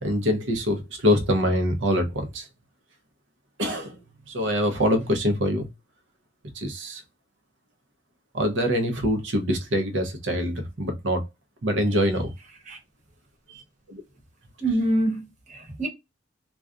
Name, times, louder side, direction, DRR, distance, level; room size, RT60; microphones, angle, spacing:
voice 1, 0.0-2.5 3.6-4.0 4.3-5.7 6.5-7.0 8.3-11.2 11.6-12.3 13.5-13.6 13.9-14.0, equal, 80° right, 0.7 m, -24 dB
voice 2, 14.6-15.9, right 1 dB, 40° right, 1.0 m, -25 dB
2.4 x 2.2 x 2.4 m
head